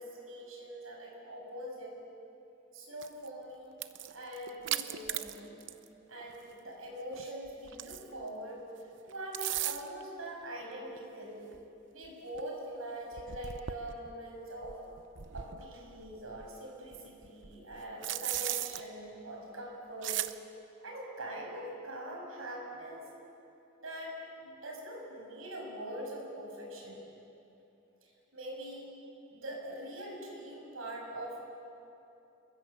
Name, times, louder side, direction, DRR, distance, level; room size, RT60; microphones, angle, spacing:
voice 1, 0.0-2.0 2.7-3.7 4.1-5.6 6.1-8.6 9.0-11.4 11.9-14.8 15.3-20.2 20.8-23.0 23.8-27.0 28.0-28.9 29.3-31.4, right 1 dB, 85° right, 0 dB, 7.0 m, -43 dB
sound 1, 3.0-3.3 3.7-5.9 6.2-6.3 7.1-8.2 9.1-10.0 11.0-11.1 11.5-11.6 12.0-12.1 12.3-12.4 13.1-14.1 14.6-16.5 16.9-18.8 20.0-20.3, right 12 dB, 60° right, 0.8 m, -37 dB
28.0 x 22.0 x 8.2 m, 2.8 s
head